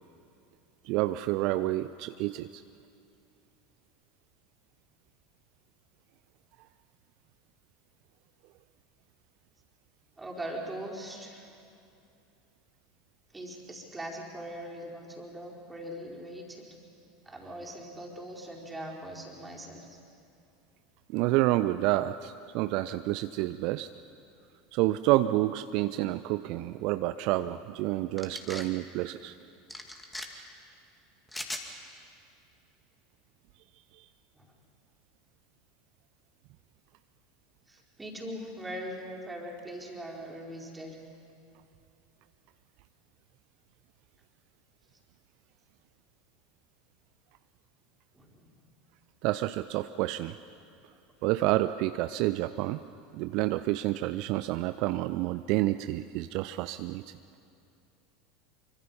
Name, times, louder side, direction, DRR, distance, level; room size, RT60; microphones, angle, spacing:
voice 1, 0.8-2.6 21.1-23.9 24.7-29.4 33.9-34.1 49.2-50.4 51.2-52.8 53.1-57.1, right 16 dB, 50° right, 13 dB, 0.4 m, -29 dB
voice 2, 10.2-11.5 13.3-16.7 17.2-20.0 34.3-34.5 37.7-40.9 48.1-48.5, right 1 dB, 10° right, -2 dB, 4.5 m, -41 dB
sound 1, 28.2-28.7 29.7-30.3 31.3-31.7, left 1 dB, 10° left, 2.2 m, -39 dB
25.5 x 24.5 x 5.5 m, 2.6 s
figure-of-eight pair, 80°, 0 cm